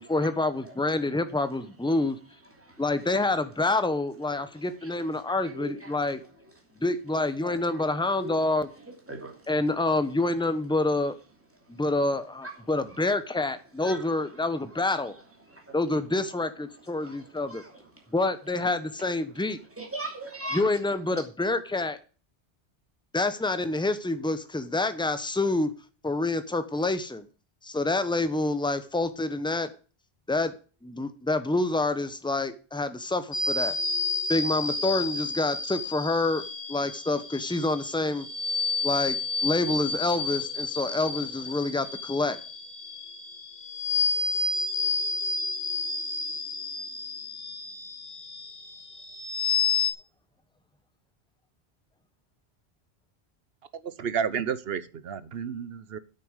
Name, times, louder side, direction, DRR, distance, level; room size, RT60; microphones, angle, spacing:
voice 1, 0.1-2.2 2.8-6.2 6.8-8.7 9.5-11.2 11.7-15.1 15.7-17.6 18.1-19.6 20.5-22.0 23.1-25.7 26.0-27.2 27.6-29.7 30.3-30.5 30.8-33.7 34.3-36.4 36.7-38.3 38.8-42.4, left 2 dB, 5° left, 0.9 m, -27 dB
voice 2, 5.2-6.0 7.4-7.8 8.2-8.4 9.1-9.4 9.8-9.9 13.8-14.0 15.5-15.7 17.0-17.8 19.8-20.6, right 1 dB, 10° right, 2.7 m, -39 dB
sound 1, 33.3-49.9, left 4 dB, 80° left, 2.0 m, -31 dB
voice 3, 54.0-56.0, right 7 dB, 70° right, 1.0 m, -31 dB
8.6 x 6.7 x 8.0 m
omnidirectional pair, 1.1 m